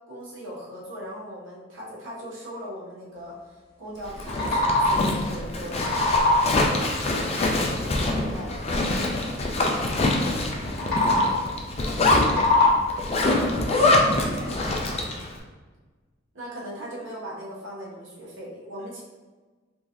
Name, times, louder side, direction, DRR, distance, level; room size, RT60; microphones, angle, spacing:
voice 1, 0.1-3.4 3.8-7.3 7.6-8.5 16.3-19.0, equal, 90° right, -5 dB, 1.0 m, -39 dB
sound 1, 4.1-5.2 5.5-6.7 10.7-11.6 12.0-13.1, left 2 dB, 55° left, 1.2 m, -22 dB
Zipper (clothing), 4.1-15.3, left 2 dB, 35° left, 0.4 m, -25 dB
voice 2, 10.1-11.3 11.8-12.6 14.0-15.1, right 1 dB, 30° right, -4 dB, 0.6 m, -41 dB
3.7 x 2.9 x 2.6 m, 1.3 s
head